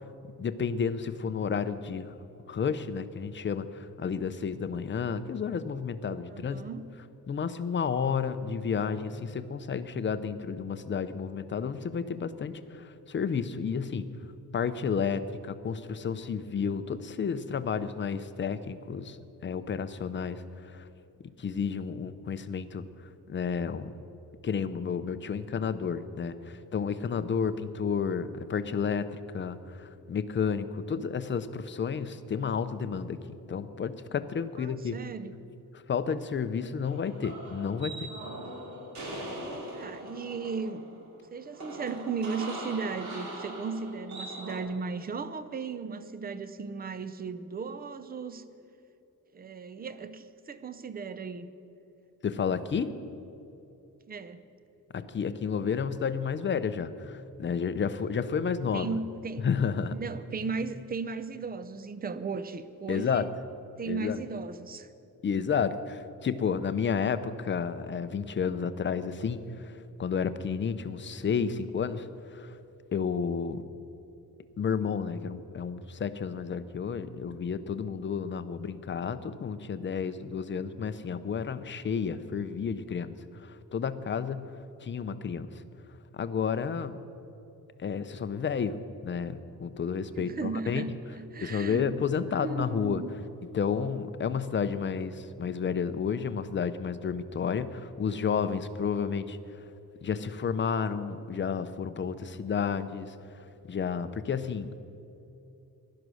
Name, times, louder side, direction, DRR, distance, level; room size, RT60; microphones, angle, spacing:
voice 1, 0.4-2.2 2.5-6.6 7.3-14.1 14.5-19.2 19.4-20.9 21.4-22.8 23.3-23.9 24.4-33.2 33.5-35.0 35.9-38.1 52.2-52.9 54.9-59.0 59.4-59.9 62.9-63.3 63.9-64.2 65.2-72.6 72.9-73.6 74.6-83.1 83.4-84.5 84.8-85.5 86.1-87.0 87.8-90.8 91.4-93.0 93.5-99.4 100.0-103.2 103.7-104.8, left 6 dB, 35° left, 12 dB, 0.6 m, -31 dB
voice 2, 6.3-6.8 34.6-35.4 39.4-48.4 49.3-51.5 54.1-54.4 58.7-59.4 59.9-63.3 63.8-64.9 90.2-91.9 92.3-93.1, right 4 dB, 25° right, 12 dB, 0.6 m, -36 dB
sound 1, 36.8-44.6, right 1 dB, 55° right, 2.9 m, -41 dB
16.0 x 11.5 x 6.3 m, 2.8 s
wide cardioid pair, 165°, 35 cm